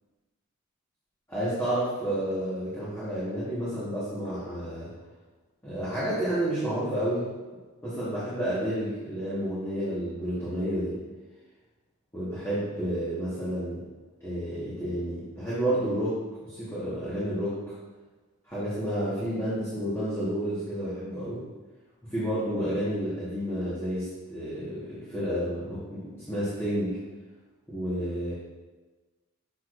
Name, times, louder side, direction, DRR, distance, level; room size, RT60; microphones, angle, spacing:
voice 1, 1.3-4.9 5.6-7.3 7.8-11.0 12.1-13.8 14.2-17.6 18.5-21.4 22.1-27.0 27.7-28.3, right 1 dB, 10° left, -11 dB, 1.5 m, -30 dB
6.8 x 6.3 x 2.6 m, 1.3 s
head